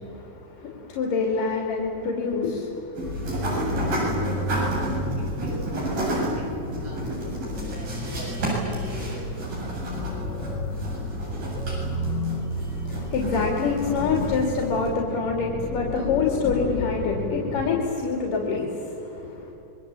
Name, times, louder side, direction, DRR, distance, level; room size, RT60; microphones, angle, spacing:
voice 1, 0.2-3.1 12.6-19.5, left 4 dB, 70° left, 0 dB, 4.4 m, -26 dB
sound 1, 3.0-17.8, left 2 dB, 35° left, 2.5 m, -32 dB
sound 2, 3.0-14.9, right 2 dB, 90° right, 9.6 m, -31 dB
voice 2, 5.2-7.1 7.6-10.7, right 1 dB, 75° right, -1 dB, 8.5 m, -42 dB
28.0 x 23.0 x 9.0 m, 2.9 s
omnidirectional pair, 4.0 m